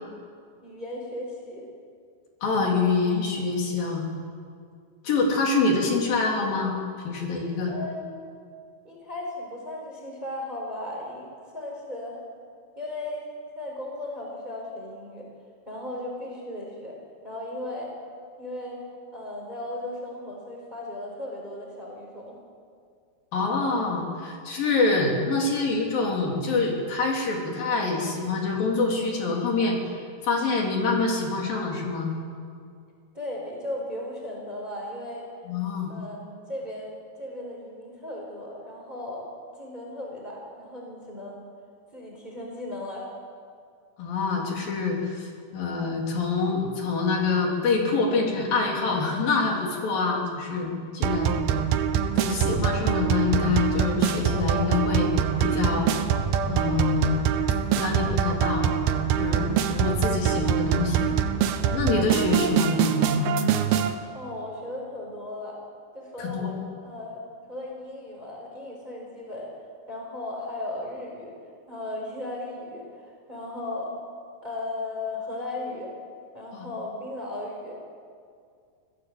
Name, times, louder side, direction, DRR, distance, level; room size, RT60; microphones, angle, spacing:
voice 1, 0.6-1.6 7.6-8.2 8.8-12.2 12.8-13.3 13.5-15.3 15.7-17.0 17.2-17.9 18.4-18.9 19.1-22.4 33.1-35.2 35.9-39.3 39.6-41.4 41.9-43.1 60.8-61.2 64.1-65.6 65.9-67.2 67.5-69.5 69.9-71.3 71.7-73.9 74.4-75.9 76.3-77.8, left 1 dB, 10° right, -1 dB, 4.2 m, -36 dB
voice 2, 2.4-4.1 5.0-6.7 7.0-7.7 23.3-29.8 30.2-32.1 35.5-35.9 44.0-51.4 52.2-55.1 55.4-55.9 56.4-57.2 57.8-58.7 59.2-61.1 61.7-63.4 66.2-66.6 76.5-76.7, left 4 dB, 70° left, 0 dB, 5.1 m, -26 dB
sound 1, 51.0-64.0, right 8 dB, 85° right, 2.9 m, -24 dB
25.5 x 17.0 x 7.8 m, 2.2 s
omnidirectional pair, 4.3 m